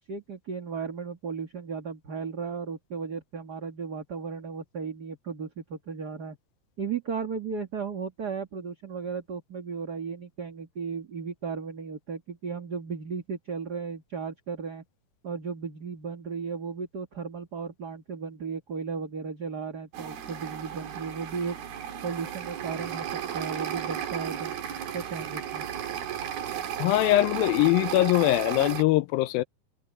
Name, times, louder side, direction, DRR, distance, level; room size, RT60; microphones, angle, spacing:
voice 1, 0.0-6.4 6.8-14.8 15.2-21.6 22.0-23.1 23.3-24.6 24.9-25.7, right 5 dB, 35° right, 1.9 m, -35 dB
sound 1, 19.9-28.8, right 9 dB, 90° right, 4.1 m, -34 dB
voice 2, 26.8-29.4, left 17 dB, 85° left, 2.4 m, -22 dB
omnidirectional pair, 4.1 m